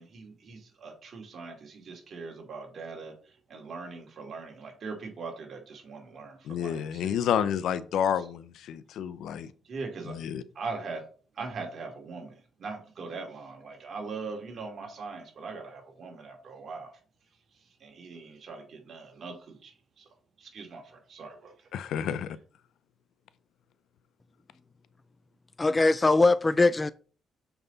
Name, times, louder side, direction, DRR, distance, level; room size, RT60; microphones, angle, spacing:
voice 1, 0.0-7.1 8.2-8.3 9.6-10.2 10.5-11.0 11.3-17.0 17.5-20.1 20.4-21.7, right 4 dB, 55° right, 2.6 m, -41 dB
voice 2, 6.5-9.5 10.1-10.4 21.7-22.4, left 9 dB, 75° left, 0.6 m, -30 dB
voice 3, 25.6-26.9, left 3 dB, 20° left, 0.3 m, -21 dB
7.0 x 5.7 x 4.0 m
cardioid pair, 90°, 0 cm